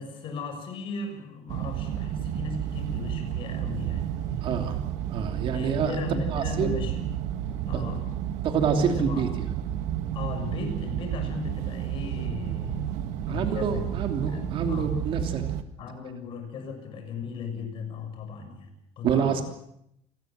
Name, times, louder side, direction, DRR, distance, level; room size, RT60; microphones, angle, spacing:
voice 1, 0.0-4.6 5.4-7.1 7.6-8.2 8.9-9.2 10.1-13.8 14.3-14.9 15.8-19.4, left 5 dB, 45° left, 5 dB, 6.6 m, -37 dB
sound 1, 1.5-15.6, right 11 dB, 75° right, 1.7 m, -31 dB
voice 2, 4.4-4.8 5.1-5.9 6.3-6.8 7.7-7.8 8.4-9.3 13.3-15.4 19.0-19.4, right 6 dB, 45° right, 6 dB, 3.0 m, -27 dB
28.5 x 19.0 x 7.6 m, 0.78 s
cardioid pair, 170°, 12 cm